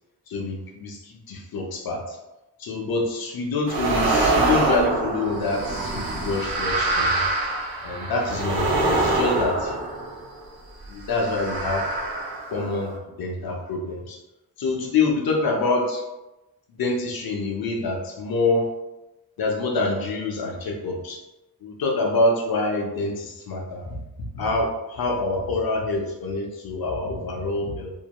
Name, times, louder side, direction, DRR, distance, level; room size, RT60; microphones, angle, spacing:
voice 1, 0.3-2.2 2.6-7.3 7.8-9.7 10.9-11.9 12.5-12.9 13.2-14.2 14.6-16.0 16.7-18.7 19.4-21.2 21.6-23.9 24.3-27.9, left 2 dB, 75° left, 0 dB, 0.7 m, -26 dB
sound 1, 3.7-10.4 11.1-13.0, right 2 dB, 75° right, 0.7 m, -25 dB
2.7 x 2.1 x 2.9 m, 0.98 s
wide cardioid pair, 110°, 37 cm